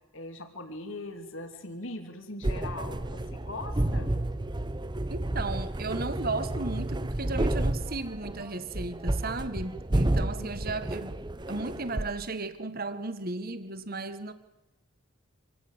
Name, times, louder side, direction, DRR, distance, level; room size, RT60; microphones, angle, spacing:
voice 1, 0.1-4.1 10.4-10.5, left 2 dB, 60° left, 6 dB, 2.8 m, -40 dB
sound 1, 2.4-12.1, right 1 dB, 20° right, 0.8 m, -31 dB
voice 2, 5.1-11.2 11.5-14.3, right 3 dB, 45° right, 11 dB, 1.6 m, -35 dB
26.5 x 18.0 x 8.1 m, 1.0 s
head